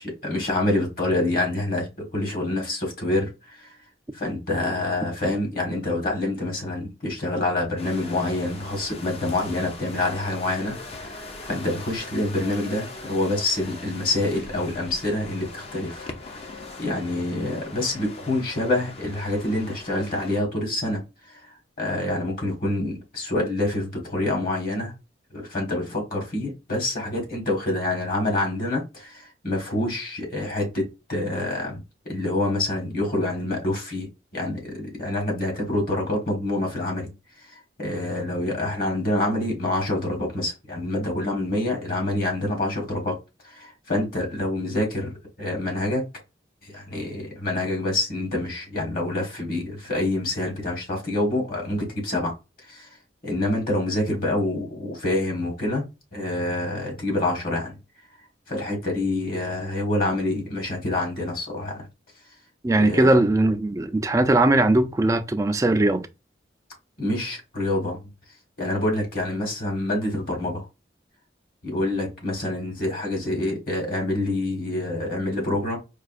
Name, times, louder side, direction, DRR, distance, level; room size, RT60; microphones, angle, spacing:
voice 1, 0.0-3.7 4.1-16.1 16.8-21.4 21.8-24.9 25.3-37.1 37.8-43.1 43.4-46.0 46.6-52.3 52.7-52.9 53.2-55.8 56.1-57.8 58.5-61.9 62.8-63.1 67.0-68.1 68.6-70.7 71.6-75.8, left 1 dB, 50° left, 1.4 m, -27 dB
sound 1, 7.8-20.4, left 2 dB, 35° left, 0.5 m, -41 dB
voice 2, 62.6-66.1, right 2 dB, 20° right, 0.3 m, -19 dB
4.6 x 2.3 x 2.4 m
head